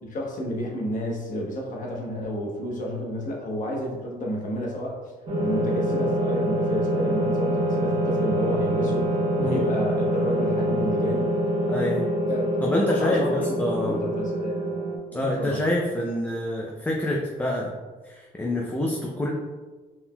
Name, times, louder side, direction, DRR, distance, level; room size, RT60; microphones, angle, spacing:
voice 1, 0.0-5.0 5.4-11.3 12.3-12.5 12.9-14.8 15.1-15.6, equal, 50° left, -1 dB, 1.0 m, -31 dB
sound 1, 5.3-15.0, right 1 dB, 35° right, 1.2 m, -25 dB
voice 2, 9.4-9.7 11.7-12.1 12.6-14.0 15.1-17.7 18.0-19.3, left 1 dB, 10° left, -2 dB, 0.4 m, -26 dB
4.2 x 3.8 x 2.2 m, 1.4 s
cardioid pair, 110°, 17 cm